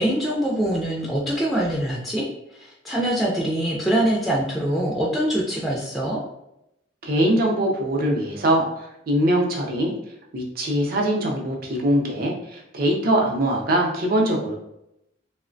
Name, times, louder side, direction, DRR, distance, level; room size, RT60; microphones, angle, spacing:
voice 1, 0.0-2.3 2.5-6.2, right 1 dB, ahead, -4 dB, 0.3 m, -24 dB
voice 2, 7.0-9.9 10.3-14.6, right 1 dB, 55° right, 0 dB, 0.5 m, -22 dB
3.0 x 2.1 x 2.5 m, 0.83 s
head